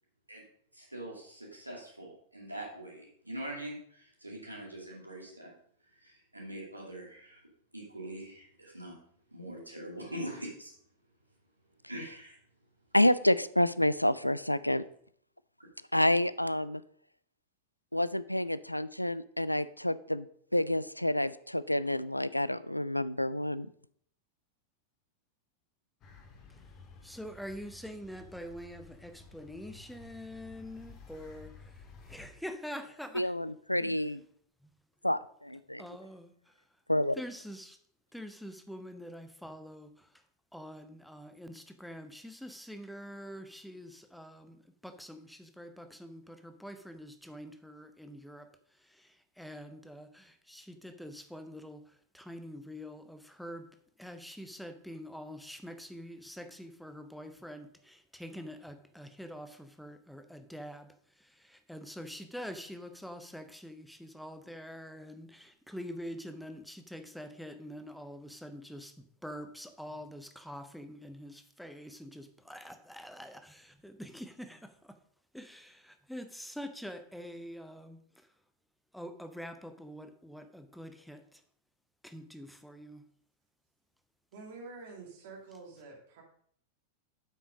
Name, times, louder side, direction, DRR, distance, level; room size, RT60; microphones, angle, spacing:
voice 1, 0.7-5.5 6.0-7.4 7.7-9.0 9.3-10.7 11.9-12.4, right 1 dB, 85° right, -2 dB, 2.5 m, -43 dB
voice 2, 12.9-14.8 15.9-16.8 17.9-20.3 20.5-23.7 33.1-34.2 35.0-35.8 36.9-37.2, left 1 dB, 85° left, 16 dB, 0.3 m, -28 dB
sound 1, 26.0-32.3, left 4 dB, 35° left, 1.6 m, -53 dB
voice 3, 27.0-33.3 33.8-34.0 34.6-34.7 35.8-36.6 37.1-37.8 38.1-40.2 40.5-53.7 54.0-75.0 75.3-78.3 78.9-81.4 82.0-83.0, equal, ahead, 9 dB, 0.8 m, -45 dB
voice 4, 84.3-86.2, right 3 dB, 55° right, 0 dB, 2.4 m, -47 dB
8.0 x 6.1 x 5.1 m, 0.62 s
figure-of-eight pair, 90°, 0 cm